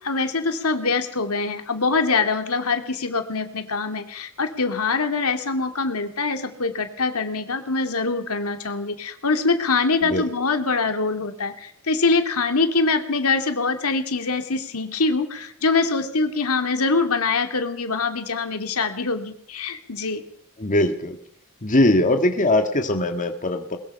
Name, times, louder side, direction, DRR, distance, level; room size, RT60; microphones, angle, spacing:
voice 1, 0.0-20.2, left 4 dB, 80° left, 6 dB, 2.6 m, -24 dB
voice 2, 20.6-21.2 21.6-23.8, left 1 dB, 35° left, 5 dB, 1.7 m, -20 dB
22.0 x 21.5 x 5.6 m, 0.66 s
head